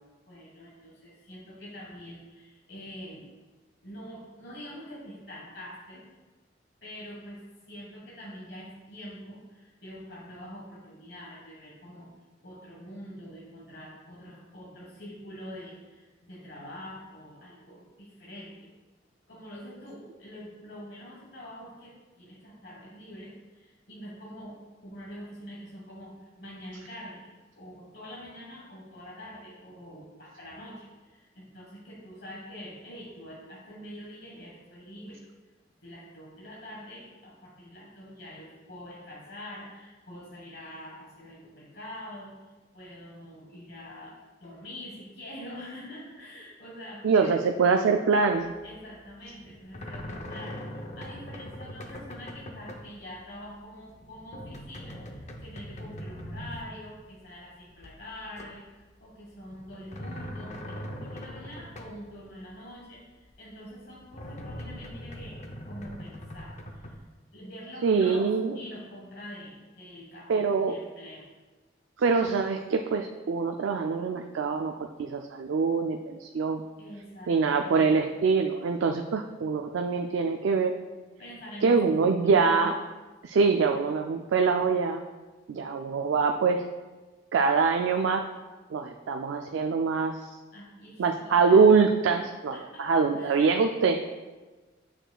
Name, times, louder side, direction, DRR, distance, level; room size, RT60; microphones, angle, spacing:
voice 1, 0.3-3.3 3.8-6.0 6.8-7.4 7.7-12.1 12.4-18.7 19.3-24.6 24.8-27.3 27.5-35.2 35.8-47.4 48.6-58.6 59.0-67.0 67.3-68.3 68.5-71.2 76.8-78.2 81.2-82.7 90.5-91.7 92.5-93.5, equal, 60° left, -4 dB, 1.4 m, -45 dB
voice 2, 47.0-48.5 67.8-68.6 70.3-70.8 72.0-74.7 75.0-76.6 77.3-80.7 81.6-82.8 83.2-85.1 85.5-86.6 87.3-88.3 88.7-90.3 91.0-94.2, right 5 dB, 90° right, 4 dB, 0.4 m, -24 dB
sound 1, 48.3-48.7 49.0-52.9 53.2-53.6 53.9-57.4 57.8-58.9 59.2-62.1 62.5-62.6 63.3-63.4 64.0-67.1, equal, 40° left, 0.6 m, -41 dB
9.0 x 6.0 x 2.3 m, 1.3 s
head